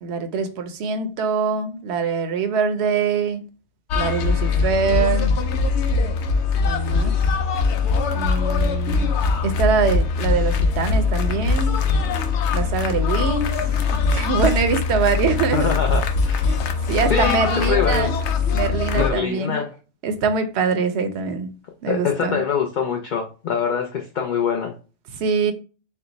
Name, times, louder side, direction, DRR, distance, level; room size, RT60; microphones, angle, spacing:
voice 1, 0.0-3.4 3.9-5.3 6.6-7.2 8.1-9.1 9.4-11.8 12.5-13.6 14.1-15.7 16.5-18.2 18.5-19.6 20.0-21.5 21.8-22.4 25.1-25.5, right 5 dB, 70° right, 0.9 m, -23 dB
sound 1, 3.9-19.1, left 4 dB, 80° left, 0.9 m, -21 dB
voice 2, 15.5-16.5 17.1-18.1 18.9-19.7 21.9-24.7, left 6 dB, 55° left, 0.6 m, -24 dB
4.4 x 2.1 x 3.9 m
omnidirectional pair, 1.2 m